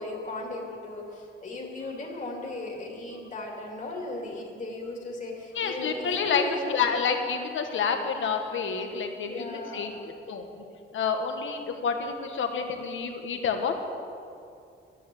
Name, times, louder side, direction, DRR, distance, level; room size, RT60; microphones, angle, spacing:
voice 1, 0.0-6.7 9.2-9.9, left 2 dB, 40° left, 0 dB, 2.5 m, -36 dB
voice 2, 5.5-6.4 6.7-10.0 10.3-10.6 10.9-13.7, left 6 dB, 70° left, 5 dB, 1.5 m, -29 dB
12.0 x 11.0 x 7.7 m, 2.5 s
wide cardioid pair, 145°, 21 cm